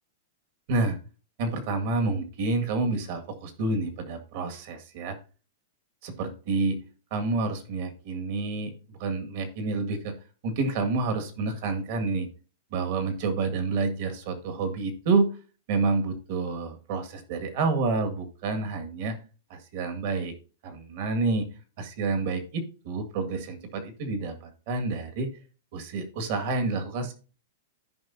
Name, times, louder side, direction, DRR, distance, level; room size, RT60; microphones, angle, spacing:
voice 1, 1.4-5.2 6.0-6.8 7.1-8.7 9.0-10.2 10.4-12.3 12.7-15.3 15.7-19.1 19.5-20.3 20.6-21.5 21.8-25.3 25.7-27.1, right 3 dB, 50° right, 6 dB, 1.8 m, -28 dB
14.0 x 5.3 x 2.7 m, 0.35 s
supercardioid pair, 160°, 0 cm